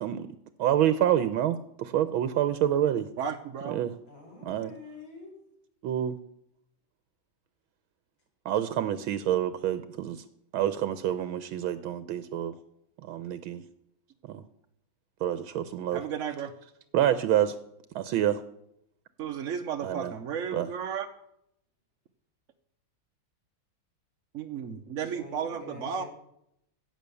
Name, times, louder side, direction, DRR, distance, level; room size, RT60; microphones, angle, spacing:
voice 1, 0.6-3.1 3.7-4.0 4.4-4.7 5.8-6.2 8.4-10.2 10.5-12.6 13.0-13.6 14.3-14.4 15.2-16.0 16.9-17.6 17.9-18.4 19.8-20.1 20.5-20.7, right 11 dB, 75° right, 12 dB, 1.5 m, -27 dB
voice 2, 3.2-3.8 15.9-16.5 19.2-21.1 24.3-26.0, right 7 dB, 60° right, 5 dB, 0.8 m, -33 dB
voice 3, 4.1-5.4 24.7-26.1, left 3 dB, 65° left, -1 dB, 5.1 m, -47 dB
16.5 x 6.7 x 6.8 m, 0.76 s
omnidirectional pair, 2.3 m